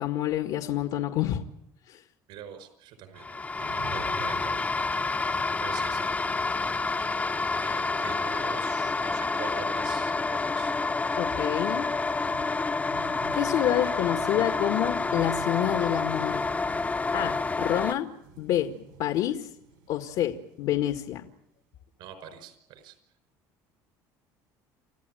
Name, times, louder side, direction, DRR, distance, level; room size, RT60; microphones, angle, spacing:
voice 1, 0.0-1.4 1.9-2.0 11.2-11.9 13.3-16.4 17.1-18.1 18.4-19.5 19.9-21.3, left 12 dB, 70° left, 6 dB, 1.8 m, -28 dB
voice 2, 2.3-4.7 5.6-6.4 7.6-10.7 17.5-17.6 22.0-23.0, right 8 dB, 75° right, 10 dB, 5.2 m, -44 dB
sound 1, 3.2-17.9, left 3 dB, 20° left, 0.9 m, -28 dB
sound 2, 3.6-21.4, right 6 dB, 90° right, 7.4 m, -51 dB
29.5 x 14.5 x 9.2 m, 0.81 s
supercardioid pair, 100°, 8 cm